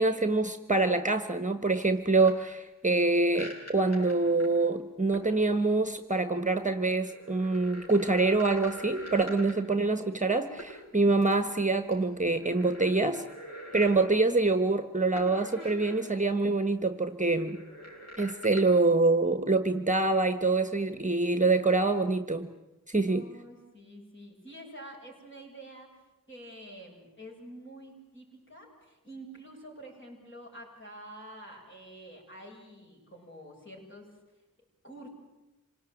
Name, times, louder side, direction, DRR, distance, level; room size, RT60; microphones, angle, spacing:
voice 1, 0.0-13.2 13.7-17.6 18.2-22.5 22.9-23.3, right 3 dB, 25° right, 10 dB, 1.3 m, -25 dB
sound 1, 2.2-2.3 3.3-4.6 5.1-5.3 6.8-9.7 10.6-10.8 11.2-11.3 11.9-14.0 15.2-16.0 16.4-16.5 17.3-18.6, equal, 55° left, 7.9 m, -44 dB
voice 2, 23.1-26.0 26.3-34.2 34.8-35.1, right 1 dB, 35° left, -1 dB, 7.9 m, -48 dB
27.0 x 18.5 x 9.1 m, 1.0 s
wide cardioid pair, 65°, 32 cm